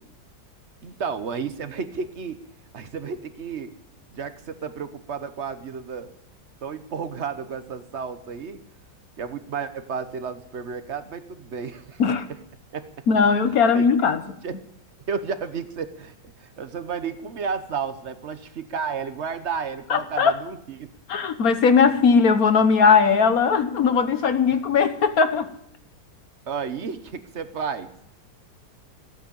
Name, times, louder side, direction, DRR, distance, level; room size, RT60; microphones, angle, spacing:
voice 1, 0.8-2.4 2.7-3.7 4.1-6.1 6.6-8.6 9.2-12.0 12.7-12.9 13.5-13.9 14.4-14.6 15.1-20.9 26.5-27.9, right 6 dB, 45° right, 11 dB, 1.1 m, -32 dB
voice 2, 13.1-14.2 19.9-20.3 21.1-25.5, left 5 dB, 55° left, 10 dB, 1.4 m, -19 dB
15.5 x 9.3 x 8.7 m, 0.71 s
omnidirectional pair, 1.9 m